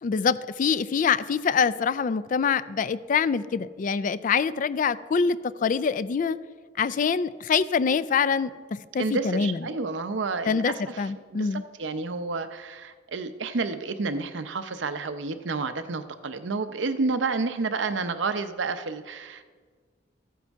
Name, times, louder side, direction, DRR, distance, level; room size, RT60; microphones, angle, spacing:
voice 1, 0.0-6.4 6.8-9.7 10.4-11.6, left 6 dB, 45° left, 16 dB, 0.3 m, -25 dB
voice 2, 9.0-19.5, right 4 dB, 85° right, 10 dB, 0.7 m, -30 dB
14.0 x 9.3 x 3.5 m, 1.5 s
head